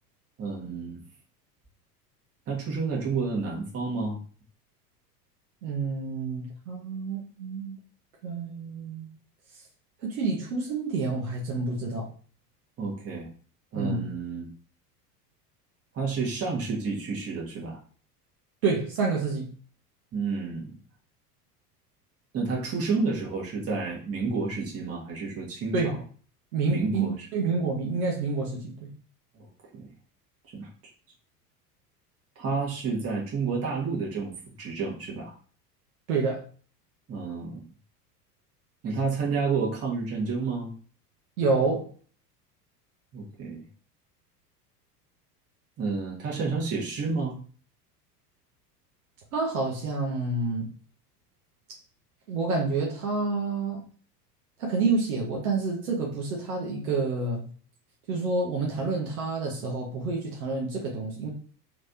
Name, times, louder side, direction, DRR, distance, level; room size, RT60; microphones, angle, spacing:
voice 1, 0.4-1.0 2.5-4.2 12.8-13.3 13.7-14.5 15.9-17.8 20.1-20.8 22.3-26.0 26.7-27.3 29.3-29.5 29.7-29.9 30.5-30.7 32.3-34.3 34.6-35.3 37.1-37.6 38.8-40.7 43.1-43.6 45.8-47.4, right 4 dB, 30° right, -2 dB, 1.5 m, -30 dB
voice 2, 5.6-7.8 8.2-9.1 10.0-12.1 13.7-14.1 18.6-19.5 25.7-26.0 26.5-28.7 36.1-36.4 41.4-41.9 49.3-50.6 52.3-53.8 54.6-57.4 58.1-61.3, right 3 dB, 65° right, -2 dB, 1.2 m, -28 dB
3.3 x 3.2 x 2.7 m, 0.42 s
figure-of-eight pair, 75°, 48 cm